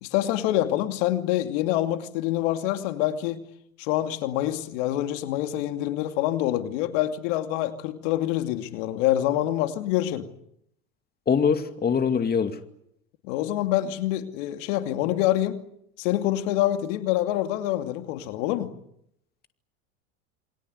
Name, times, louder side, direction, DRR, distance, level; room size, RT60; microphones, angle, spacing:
voice 1, 0.0-3.4 3.8-10.3 13.2-15.6 16.0-18.7, left 13 dB, 65° left, 2.7 m, -26 dB
voice 2, 11.3-12.6, left 6 dB, 25° left, 2.4 m, -23 dB
28.5 x 22.5 x 8.1 m
hypercardioid pair, 100°, 41 cm